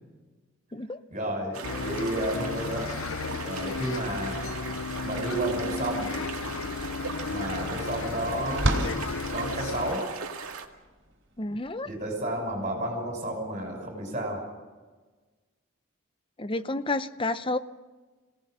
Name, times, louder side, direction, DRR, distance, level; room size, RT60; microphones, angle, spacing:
voice 1, 1.1-2.9 3.4-4.4 5.0-6.1 7.3-8.7 9.3-10.0 11.8-14.4, right 1 dB, 35° right, 2 dB, 6.1 m, -31 dB
sound 1, 1.5-10.7, right 5 dB, 85° right, 2.1 m, -39 dB
Bus, 1.6-10.0, left 5 dB, 75° left, 0.6 m, -34 dB
sound 2, 6.5-12.5, right 1 dB, 60° right, 3.6 m, -34 dB
voice 2, 11.4-11.9 16.4-17.6, left 2 dB, 25° left, 12 dB, 0.7 m, -30 dB
28.5 x 18.0 x 6.6 m, 1.3 s
head